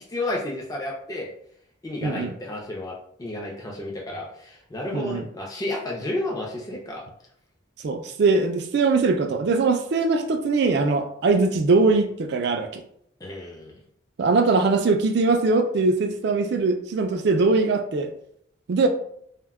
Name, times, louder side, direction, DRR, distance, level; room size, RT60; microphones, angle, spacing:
voice 1, 0.1-1.3 1.8-2.9 3.2-7.0 13.2-13.7, left 1 dB, 20° left, -2 dB, 0.4 m, -31 dB
voice 2, 2.0-2.4 4.9-5.3 7.8-12.8 14.2-18.1 18.7-18.9, right 3 dB, 55° right, 6 dB, 0.3 m, -21 dB
2.1 x 2.1 x 3.4 m, 0.68 s
head